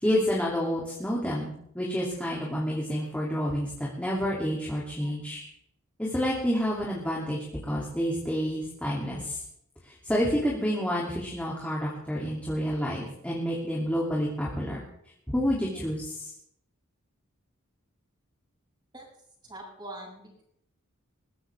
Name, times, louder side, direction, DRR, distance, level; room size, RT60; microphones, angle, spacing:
voice 1, 0.0-5.4 6.0-9.4 9.8-14.8 15.3-16.3, equal, 5° left, -5 dB, 2.8 m, -29 dB
voice 2, 19.4-20.4, right 1 dB, 20° right, -2 dB, 7.0 m, -43 dB
21.5 x 16.5 x 3.5 m, 0.72 s
head